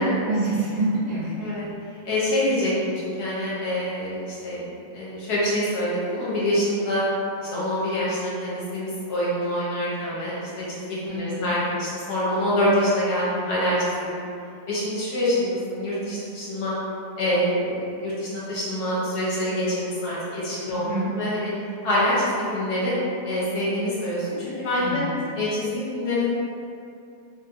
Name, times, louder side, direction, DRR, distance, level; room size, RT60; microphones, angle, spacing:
voice 1, 0.0-1.5 11.1-11.5 20.7-21.1 24.7-25.1, right 2 dB, 75° right, -11 dB, 1.3 m, -27 dB
voice 2, 1.4-1.7 2.0-4.6 4.9-7.0 7.4-14.3 14.7-16.7 17.2-21.5 21.8-22.9 23.2-24.3 24.6-25.0 25.4-26.3, left 1 dB, 75° left, -9 dB, 1.4 m, -25 dB
3.2 x 2.6 x 2.6 m, 2.6 s
omnidirectional pair, 1.7 m